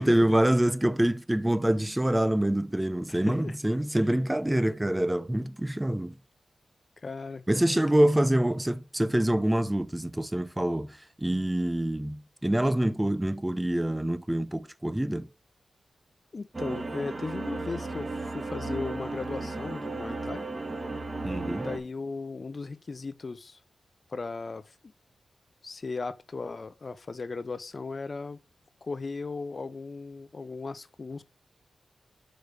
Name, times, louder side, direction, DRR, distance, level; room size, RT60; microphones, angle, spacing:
voice 1, 0.0-6.1 7.5-15.3 21.2-21.7, right 1 dB, 10° right, 0.6 m, -26 dB
voice 2, 3.1-3.6 3.9-4.1 7.0-7.4 7.7-8.1 16.3-20.5 21.4-23.6 24.1-24.9 25.6-28.4 28.8-31.2, left 4 dB, 45° left, 0.5 m, -37 dB
sound 1, 16.5-21.8, right 2 dB, 30° right, 1.8 m, -34 dB
6.2 x 5.1 x 6.6 m
cardioid pair, 75°, 0 cm